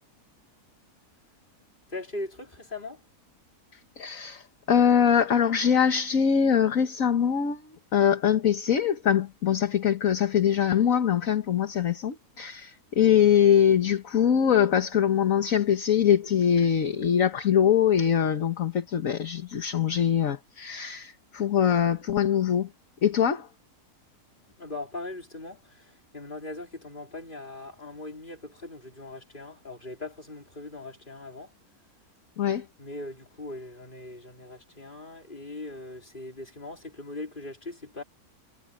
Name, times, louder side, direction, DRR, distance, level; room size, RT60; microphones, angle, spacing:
voice 1, 1.9-3.0 24.6-31.5 32.8-38.0, left 2 dB, 30° left, 3.8 m, -40 dB
voice 2, 4.0-7.6 7.9-22.7 23.0-23.5 32.4-32.6, left 8 dB, 60° left, 1.6 m, -23 dB
omnidirectional pair, 1.6 m